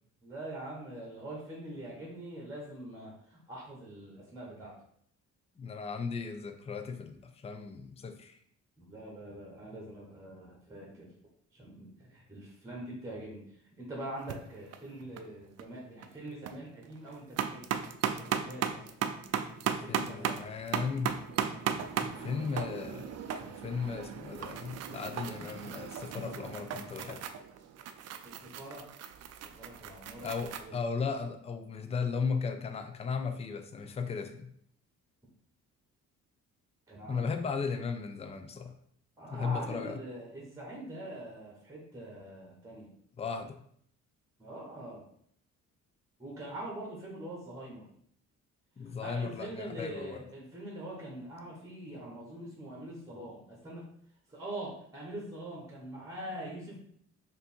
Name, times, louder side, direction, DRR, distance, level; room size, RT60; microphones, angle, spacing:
voice 1, 0.2-4.8 8.8-11.1 11.5-13.4 13.8-17.7 18.1-18.9 19.6-20.4 22.1-22.4 28.2-28.9 29.6-30.7 36.9-37.3 39.2-42.9 44.4-45.0 46.2-47.8 49.0-53.8 54.3-56.8, right 1 dB, 10° right, -2 dB, 1.2 m, -43 dB
voice 2, 5.6-8.4 19.9-21.2 22.0-27.2 30.2-34.5 37.1-38.8 39.3-40.0 43.2-43.6 48.8-50.2, left 5 dB, 20° left, 7 dB, 0.4 m, -36 dB
sound 1, 14.2-14.4 14.7-15.3 15.6-15.7 16.0-16.6 16.9-30.7, right 8 dB, 55° right, 0.4 m, -36 dB
3.3 x 2.7 x 4.3 m, 0.65 s
cardioid pair, 90°, 30 cm